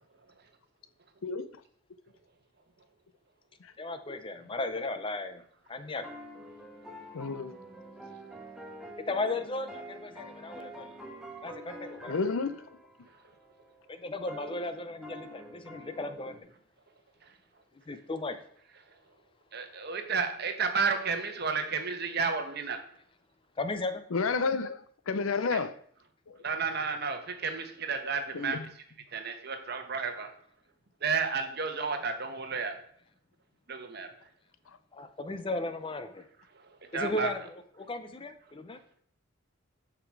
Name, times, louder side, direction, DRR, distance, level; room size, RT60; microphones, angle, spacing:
voice 1, 3.8-5.4 5.7-6.1 9.1-11.0 11.4-12.2 13.9-16.4 17.9-18.4 23.6-24.0 34.9-36.3 36.9-38.8, left 2 dB, 25° left, 0.5 m, -35 dB
sound 1, 5.9-16.4, right 1 dB, 5° right, 1.2 m, -47 dB
voice 2, 7.1-7.5 12.1-12.6 24.1-24.8 25.1-25.7 26.3-26.4 28.3-28.6, left 4 dB, 75° left, 0.6 m, -30 dB
voice 3, 19.5-22.8 25.5-25.6 26.4-28.6 29.1-30.3 31.0-32.8 33.7-34.1 36.9-37.3, right 5 dB, 50° right, 1.2 m, -32 dB
7.9 x 6.0 x 4.7 m
head